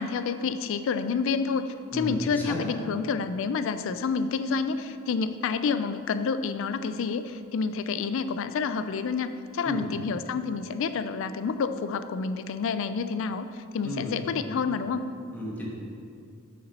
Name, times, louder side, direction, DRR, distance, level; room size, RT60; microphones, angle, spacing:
voice 1, 0.0-15.0, left 5 dB, 65° left, 11 dB, 0.3 m, -29 dB
voice 2, 1.9-2.6 9.6-9.9 13.8-14.2 15.3-15.7, equal, 10° left, -5 dB, 1.3 m, -33 dB
6.7 x 4.4 x 5.2 m, 2.4 s
head